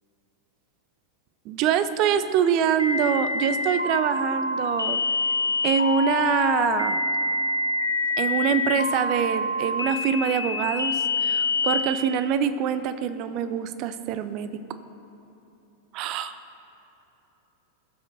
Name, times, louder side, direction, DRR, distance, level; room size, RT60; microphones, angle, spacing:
voice 1, 1.5-5.0 5.6-7.0 8.2-14.6 15.9-16.4, right 8 dB, 40° right, 12 dB, 0.5 m, -25 dB
sound 1, 2.8-11.8, left 3 dB, 85° left, 0.5 m, -26 dB
18.0 x 7.4 x 2.6 m, 3.0 s
figure-of-eight pair, 90°, 0 cm